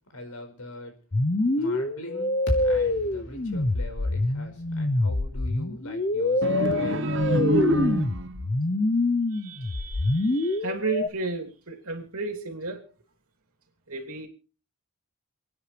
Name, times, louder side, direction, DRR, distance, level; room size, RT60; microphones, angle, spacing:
voice 1, 0.1-0.9 1.6-2.3 2.6-7.1, left 1 dB, 85° left, 5.0 m, -41 dB
sound 1, 1.1-11.1, left 2 dB, 35° left, 0.7 m, -26 dB
sound 2, 2.5-6.7, equal, 50° left, 4.3 m, -36 dB
sound 3, 6.4-8.5, right 1 dB, 55° right, 1.1 m, -25 dB
voice 2, 9.3-12.8 13.9-14.3, right 3 dB, 75° right, 3.0 m, -33 dB
28.5 x 9.8 x 3.3 m
head